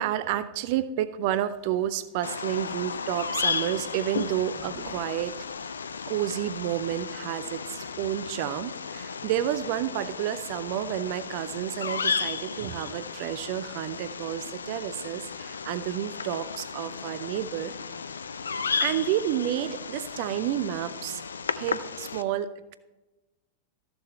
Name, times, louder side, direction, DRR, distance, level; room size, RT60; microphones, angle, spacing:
voice 1, 0.0-5.4 6.1-17.8 18.8-21.2 21.5-22.8, right 12 dB, 45° right, 14 dB, 0.5 m, -30 dB
sound 1, 1.6-7.0, right 2 dB, 30° right, 1.9 m, -53 dB
Bird vocalization bird call bird song, 2.2-22.2, left 5 dB, 70° left, 0.4 m, -34 dB
13.5 x 6.9 x 4.3 m, 1.1 s
figure-of-eight pair, 90°, 0 cm